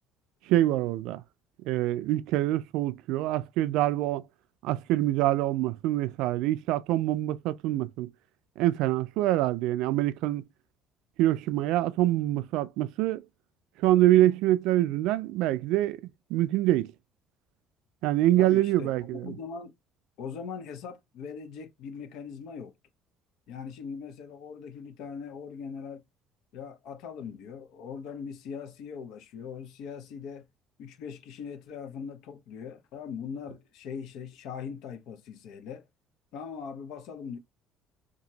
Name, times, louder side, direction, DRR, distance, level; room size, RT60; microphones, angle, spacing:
voice 1, 0.5-1.2 1.7-4.2 4.6-8.1 8.6-10.4 11.2-13.2 13.8-16.0 16.3-16.9 18.0-19.4, right 14 dB, 80° right, 0.3 m, -25 dB
voice 2, 18.4-19.7 20.2-22.7 23.5-26.0 26.5-30.5 30.8-35.8 36.3-37.4, left 6 dB, 75° left, 1.0 m, -40 dB
2.9 x 2.5 x 2.7 m
cardioid pair, 100°, 0 cm